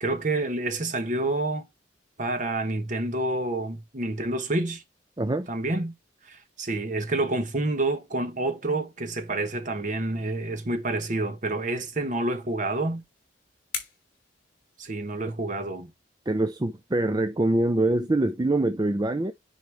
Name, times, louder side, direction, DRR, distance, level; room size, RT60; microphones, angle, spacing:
voice 1, 0.0-1.7 2.2-4.8 5.5-5.9 6.2-13.0 14.8-15.9, right 2 dB, 40° right, 1.1 m, -28 dB
voice 2, 5.2-5.5 16.3-19.3, right 2 dB, 20° right, 0.4 m, -24 dB
sound 1, 12.7-15.3, left 6 dB, 45° left, 3.3 m, -42 dB
9.6 x 4.3 x 3.4 m
head